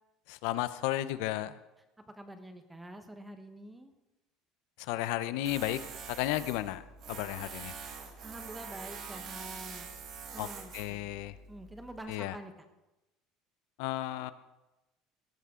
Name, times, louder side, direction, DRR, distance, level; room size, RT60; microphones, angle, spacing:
voice 1, 0.3-1.6 4.8-5.8 6.2-6.8 7.1-7.7 10.4-10.5 10.7-11.4 12.1-12.4 13.8-14.3, left 15 dB, 70° left, 14 dB, 0.7 m, -33 dB
voice 2, 2.2-3.9 8.2-9.9 10.3-11.2 11.5-12.5, right 1 dB, 5° right, 7 dB, 1.1 m, -47 dB
Tools, 5.4-12.0, right 6 dB, 40° right, 1.8 m, -45 dB
17.5 x 14.0 x 3.8 m, 1.0 s
cardioid pair, 170°, 0 cm